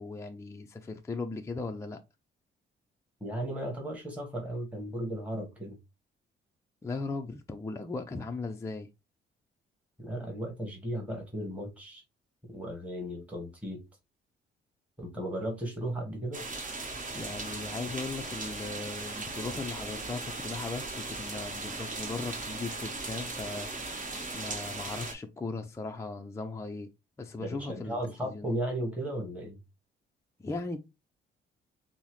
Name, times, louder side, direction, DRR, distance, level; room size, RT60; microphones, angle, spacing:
voice 1, 0.0-2.0 6.8-8.9 17.1-23.7 24.3-26.9 27.2-28.5 30.4-30.8, left 3 dB, 15° left, 0.4 m, -38 dB
voice 2, 3.2-5.8 10.0-12.0 12.5-13.8 15.0-16.4 27.4-29.6, right 1 dB, 5° right, 1.4 m, -35 dB
sound 1, 16.3-25.1, right 3 dB, 40° right, 1.3 m, -38 dB
5.4 x 2.1 x 3.1 m
cardioid pair, 90°, 20 cm